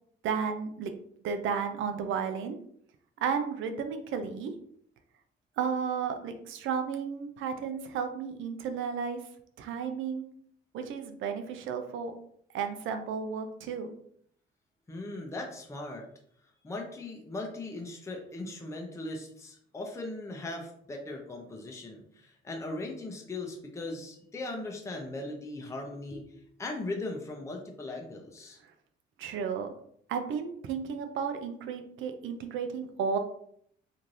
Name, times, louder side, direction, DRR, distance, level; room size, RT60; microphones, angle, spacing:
voice 1, 0.2-0.9 1.2-2.6 3.2-4.5 5.6-9.2 9.6-10.2 10.7-12.1 12.5-13.9 29.2-29.7 30.1-33.2, right 6 dB, 80° right, 8 dB, 0.5 m, -33 dB
voice 2, 14.9-16.1 16.6-28.6, left 2 dB, 15° left, 1 dB, 0.5 m, -39 dB
3.1 x 2.6 x 2.5 m, 0.66 s
cardioid pair, 90°, 20 cm